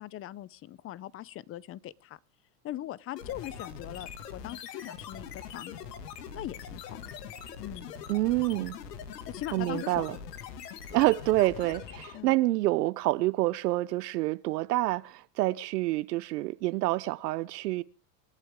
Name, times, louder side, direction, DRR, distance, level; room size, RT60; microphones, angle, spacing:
voice 1, 0.0-2.2 2.6-5.8 6.3-7.0 7.6-7.9 9.3-10.0 12.1-12.4, left 13 dB, 30° left, 0.6 m, -40 dB
sound 1, 3.2-12.3, left 7 dB, 80° left, 2.2 m, -43 dB
voice 2, 8.1-8.8 9.5-10.2 10.9-17.8, right 18 dB, 80° right, 0.7 m, -27 dB
26.5 x 9.1 x 3.7 m
supercardioid pair, 110°, 47 cm